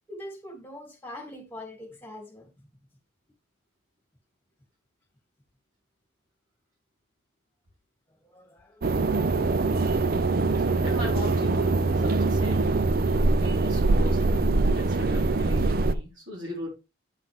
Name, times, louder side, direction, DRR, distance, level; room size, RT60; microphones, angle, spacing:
voice 1, 0.1-2.5 8.2-9.0, left 1 dB, 10° left, 2.5 m, -43 dB
sound 1, 8.8-16.0, right 3 dB, 50° right, 0.5 m, -23 dB
voice 2, 10.6-12.7 13.4-16.7, left 1 dB, 75° right, 4.2 m, -38 dB
8.8 x 6.0 x 3.5 m
head